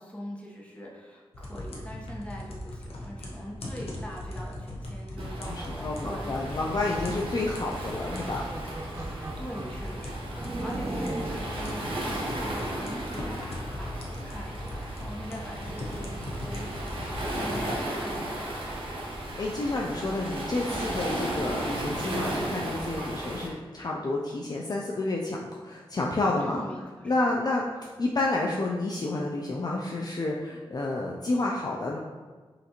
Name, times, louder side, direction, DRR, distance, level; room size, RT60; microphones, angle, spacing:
voice 1, 0.0-7.1 9.1-18.6 26.4-27.3, equal, 10° left, -3 dB, 1.0 m, -42 dB
sound 1, 1.3-18.0, left 1 dB, 80° left, 0.8 m, -39 dB
Waves surf, 5.2-23.5, right 1 dB, 65° right, 0.9 m, -35 dB
voice 2, 5.5-8.5 19.4-25.4 25.6-26.6 27.0-32.0, left 2 dB, 40° left, -2 dB, 0.4 m, -30 dB
sound 2, 7.8-9.8 10.4-11.5 12.1-13.5, right 2 dB, 30° right, 0.4 m, -38 dB
5.6 x 2.5 x 2.9 m, 1.4 s
cardioid pair, 60°, 10 cm